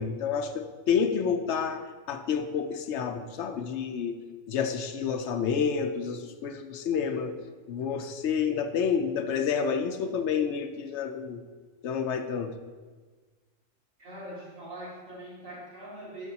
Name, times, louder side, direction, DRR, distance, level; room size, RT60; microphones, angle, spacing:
voice 1, 0.0-7.3 7.7-11.4 11.8-12.5, left 6 dB, 65° left, 7 dB, 0.9 m, -29 dB
voice 2, 14.0-16.3, right 1 dB, 80° right, -6 dB, 2.9 m, -42 dB
11.0 x 7.2 x 2.9 m, 1.4 s
omnidirectional pair, 1.4 m